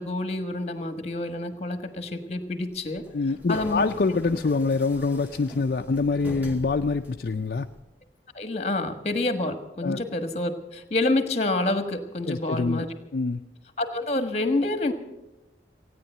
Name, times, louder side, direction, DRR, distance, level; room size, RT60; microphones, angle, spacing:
voice 1, 0.0-3.0 3.5-3.9 8.3-12.9 13.8-14.9, left 2 dB, 35° left, 8 dB, 1.4 m, -28 dB
sound 1, 2.8-7.8, equal, 10° right, 1.6 m, -42 dB
voice 2, 3.1-7.7 9.8-10.0 12.3-12.8 13.1-13.4, left 4 dB, 55° left, 6 dB, 0.4 m, -25 dB
16.5 x 9.6 x 7.9 m, 0.99 s
head